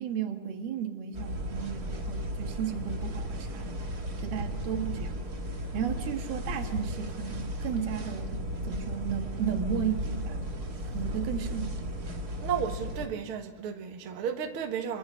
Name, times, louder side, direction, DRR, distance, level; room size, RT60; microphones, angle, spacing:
voice 1, 0.0-3.8 4.2-5.2 5.7-10.4 10.9-11.9, right 8 dB, 85° right, 3.6 m, -34 dB
sound 1, 1.1-13.1, equal, 35° right, 1.9 m, -35 dB
voice 2, 12.4-15.0, right 7 dB, 50° right, 1.9 m, -33 dB
25.0 x 24.5 x 5.7 m
omnidirectional pair, 4.2 m